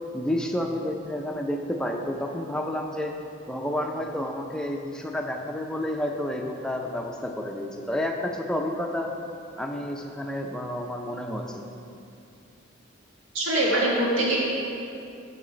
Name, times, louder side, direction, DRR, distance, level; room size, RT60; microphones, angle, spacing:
voice 1, 0.1-3.1 3.5-9.1 9.6-11.6, left 1 dB, 5° left, 1 dB, 0.5 m, -30 dB
voice 2, 13.3-14.4, right 1 dB, 80° right, -4 dB, 1.9 m, -23 dB
7.2 x 6.6 x 5.0 m, 2.6 s
head